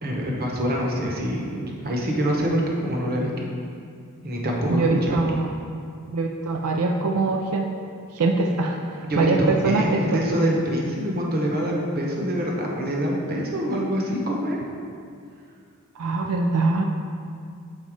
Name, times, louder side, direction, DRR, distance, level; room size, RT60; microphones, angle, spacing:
voice 1, 0.0-3.5 4.2-5.2 9.1-14.6, equal, 45° right, -1 dB, 1.0 m, -25 dB
voice 2, 4.7-5.5 6.1-7.7 8.1-10.2 16.0-16.8, right 3 dB, 90° right, 2 dB, 0.4 m, -23 dB
6.6 x 4.0 x 4.9 m, 2.3 s
head